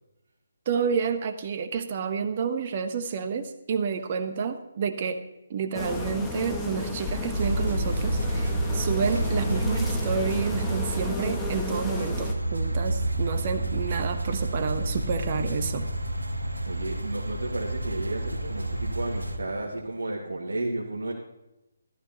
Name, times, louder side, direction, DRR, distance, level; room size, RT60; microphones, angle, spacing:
voice 1, 0.7-5.2 5.5-15.9, right 6 dB, 35° right, 8 dB, 1.1 m, -29 dB
sound 1, 5.7-12.3, left 2 dB, 5° left, 1.2 m, -33 dB
sound 2, 7.3-19.4, right 1 dB, 80° right, 1.4 m, -29 dB
voice 2, 16.7-21.1, right 2 dB, 65° right, -3 dB, 1.9 m, -32 dB
14.5 x 12.5 x 3.0 m, 0.93 s
figure-of-eight pair, 145°, 0 cm